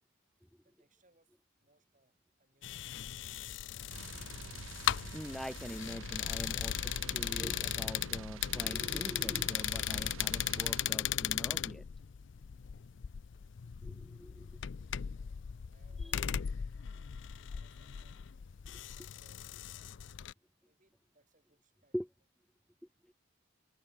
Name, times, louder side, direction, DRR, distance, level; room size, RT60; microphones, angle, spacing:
voice 1, 0.6-3.1 15.1-15.4 15.7-16.9 17.5-18.5 18.8-20.0 20.6-22.0 22.5-22.6, right 2 dB, 35° right, 6.9 m, -73 dB
sound 1, 2.6-20.3, left 10 dB, 60° left, 0.4 m, -37 dB
sound 2, 3.9-10.9, right 4 dB, 75° right, 0.9 m, -47 dB
voice 2, 5.1-11.8 13.8-14.5 16.0-16.2 21.9-22.1, equal, ahead, 0.4 m, -43 dB
head